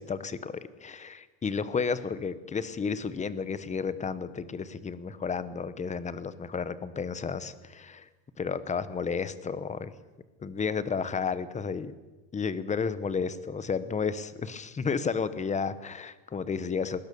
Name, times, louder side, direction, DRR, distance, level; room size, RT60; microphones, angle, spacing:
voice 1, 0.0-8.1 8.4-9.9 10.4-11.9 12.3-17.0, left 5 dB, 15° left, 14 dB, 0.9 m, -32 dB
21.0 x 19.5 x 6.9 m, 1.1 s
cardioid pair, 160°, 47 cm